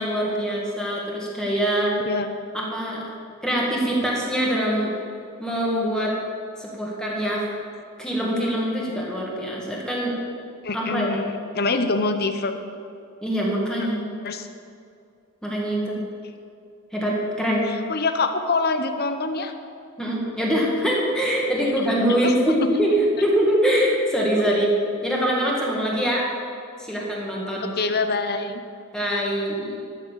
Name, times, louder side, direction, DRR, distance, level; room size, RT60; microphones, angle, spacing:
voice 1, 0.0-1.9 2.5-3.0 3.4-4.9 5.4-6.1 6.6-7.4 8.0-10.1 10.7-11.1 13.2-14.1 15.4-16.0 16.9-17.7 20.0-24.7 25.0-26.3 26.8-27.7 28.9-29.8, equal, 5° left, -4 dB, 1.8 m, -23 dB
voice 2, 2.0-2.3 10.6-11.3 11.5-12.5 14.2-14.5 17.7-19.5 22.2-22.3 22.6-22.7 27.8-28.6, left 3 dB, 45° left, 8 dB, 0.8 m, -25 dB
13.0 x 6.4 x 7.4 m, 2.4 s
head